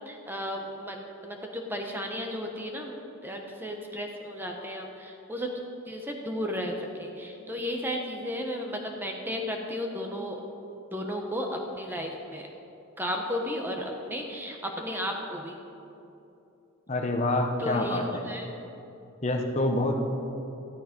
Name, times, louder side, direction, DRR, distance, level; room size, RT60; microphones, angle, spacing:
voice 1, 0.0-5.5 5.9-10.4 10.9-12.5 13.0-15.6 17.6-18.5, equal, 10° right, 2 dB, 1.0 m, -34 dB
voice 2, 16.9-18.2 19.2-20.0, left 2 dB, 30° left, 3 dB, 1.0 m, -27 dB
13.5 x 11.5 x 5.3 m, 2.8 s
head